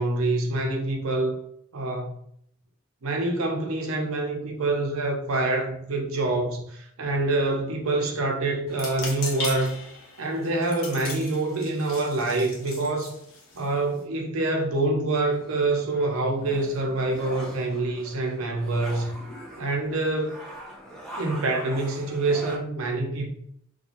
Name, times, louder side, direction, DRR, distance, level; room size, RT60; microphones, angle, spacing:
voice 1, 0.0-1.4 1.7-2.1 3.0-9.7 10.2-13.1 13.5-19.1 19.6-20.4 21.2-23.3, right 2 dB, 75° right, 0.6 m, -26 dB
sound 1, 8.7-14.0, left 3 dB, 70° left, 0.7 m, -38 dB
sound 2, 15.3-22.6, equal, 5° left, 0.4 m, -43 dB
2.5 x 2.2 x 2.9 m
head